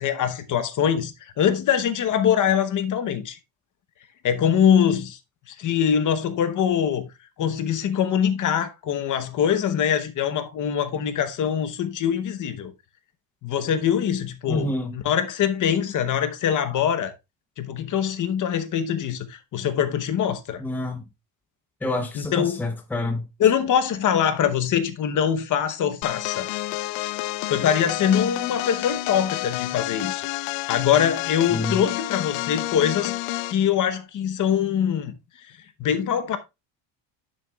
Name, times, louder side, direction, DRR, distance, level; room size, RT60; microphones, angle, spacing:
voice 1, 0.0-3.4 4.2-5.2 5.5-7.1 7.4-12.7 13.4-17.1 17.6-20.6 22.2-22.6 23.4-26.5 27.5-30.3 30.7-33.1 33.5-35.2 35.8-36.4, left 8 dB, 45° left, 0.9 m, -23 dB
voice 2, 14.5-15.0 20.6-21.0 21.8-23.2 31.5-31.8, left 1 dB, 5° left, 0.8 m, -28 dB
sound 1, 26.0-33.6, left 18 dB, 85° left, 0.6 m, -29 dB
9.2 x 7.1 x 2.3 m
cardioid pair, 150°, 43 cm